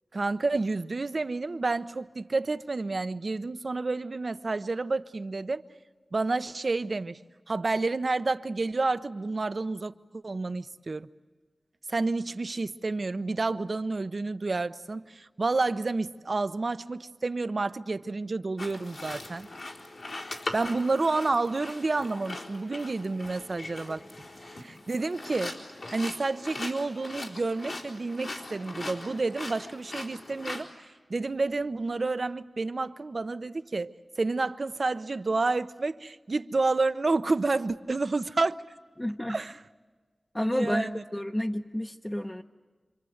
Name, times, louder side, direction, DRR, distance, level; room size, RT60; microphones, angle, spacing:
voice 1, 0.1-5.6 6.1-7.2 7.5-11.1 11.9-19.5 20.5-24.0 24.4-25.5 25.9-38.6 39.3-39.7 40.5-41.0, right 3 dB, 60° right, 0.8 m, -30 dB
sound 1, 18.6-30.6, left 2 dB, 75° left, 4.1 m, -40 dB
voice 2, 39.0-39.4 40.3-42.4, left 1 dB, 20° left, 0.9 m, -30 dB
27.5 x 25.5 x 8.0 m
cardioid pair, 40°, 0 cm